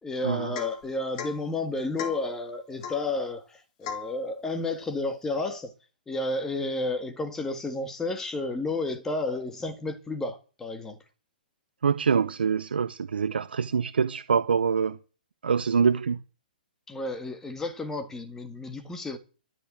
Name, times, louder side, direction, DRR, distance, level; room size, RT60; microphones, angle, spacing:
voice 1, 0.0-5.7 6.1-11.0 16.9-19.2, left 2 dB, 10° left, 1.7 m, -31 dB
Domestic sounds home sounds / Chink clink / Drip, 0.5-0.8 1.2-1.4 2.0-2.3 2.8-3.1 3.8-4.1, left 7 dB, 40° left, 3.2 m, -36 dB
voice 2, 11.8-15.0 15.4-16.2, right 6 dB, 85° right, 0.8 m, -25 dB
13.5 x 6.7 x 8.8 m
hypercardioid pair, 150°, 5 cm